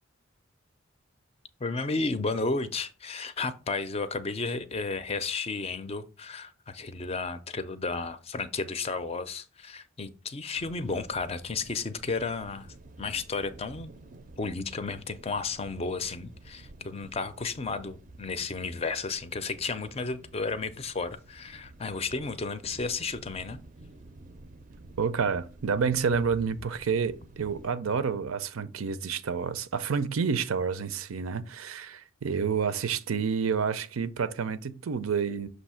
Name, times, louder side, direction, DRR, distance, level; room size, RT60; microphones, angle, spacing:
voice 1, 1.6-13.9 14.4-23.6, left 4 dB, 30° left, 0.4 m, -33 dB
sound 1, 10.5-27.7, right 2 dB, 40° right, 0.5 m, -51 dB
voice 2, 25.0-35.5, right 6 dB, 90° right, 0.5 m, -29 dB
6.4 x 2.7 x 5.6 m
head